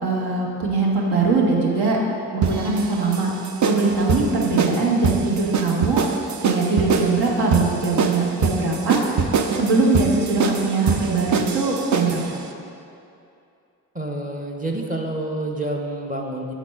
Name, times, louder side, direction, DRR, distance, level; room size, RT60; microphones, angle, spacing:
voice 1, 0.0-2.0 2.3-3.3 3.6-6.0 6.4-9.0 9.5-12.4, right 3 dB, 75° right, -3 dB, 1.3 m, -21 dB
sound 1, 2.4-12.3, right 5 dB, 45° right, 0.6 m, -24 dB
voice 2, 13.9-16.5, right 1 dB, 20° right, 0 dB, 0.8 m, -28 dB
7.1 x 4.1 x 4.4 m, 2.6 s
supercardioid pair, 50°, 40 cm